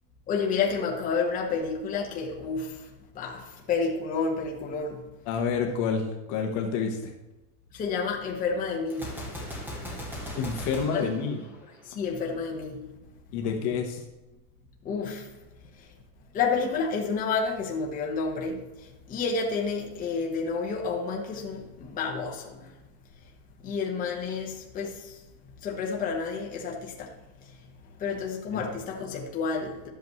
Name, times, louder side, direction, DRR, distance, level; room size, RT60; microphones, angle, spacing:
voice 1, 0.3-2.7 3.1-3.4 3.7-5.0 7.7-9.1 10.9-11.1 11.9-12.8 14.8-15.2 16.3-18.6 19.1-22.6 23.6-24.9 25.6-27.1 28.0-29.9, left 5 dB, 15° left, 1.1 m, -29 dB
voice 2, 5.3-7.1 10.3-11.4 13.3-14.0 28.5-28.6, left 6 dB, 40° left, 1.1 m, -28 dB
Gunshot gunfire, 8.9-12.0, equal, 5° right, 1.3 m, -38 dB
12.0 x 8.1 x 3.1 m
supercardioid pair, 165°, 48 cm